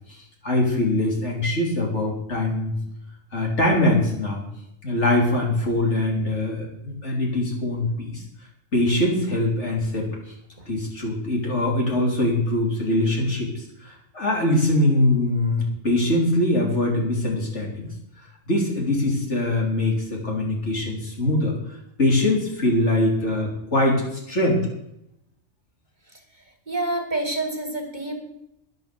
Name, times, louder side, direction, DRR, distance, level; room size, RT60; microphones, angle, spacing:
voice 1, 0.4-2.7 3.3-4.4 4.8-8.2 8.7-10.1 10.7-17.9 18.5-21.5 22.0-24.6, left 1 dB, 55° left, -1 dB, 3.7 m, -22 dB
voice 2, 26.7-28.2, right 2 dB, 35° right, 4 dB, 1.9 m, -27 dB
11.0 x 10.5 x 6.8 m, 0.82 s
omnidirectional pair, 1.4 m